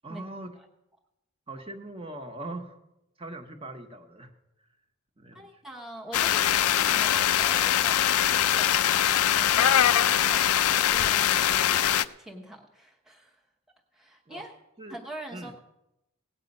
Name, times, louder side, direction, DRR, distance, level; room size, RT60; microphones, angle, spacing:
voice 1, 0.0-0.6 1.5-2.8 3.2-4.3 5.2-5.6 14.3-14.4 14.8-15.0 15.3-15.5, right 2 dB, 25° right, 5 dB, 1.2 m, -41 dB
voice 2, 5.3-13.4 13.9-14.6 14.9-15.6, right 1 dB, ahead, 0 dB, 0.9 m, -44 dB
sound 1, 6.1-12.0, left 11 dB, 80° left, 0.5 m, -22 dB
18.0 x 8.2 x 5.4 m, 0.90 s
head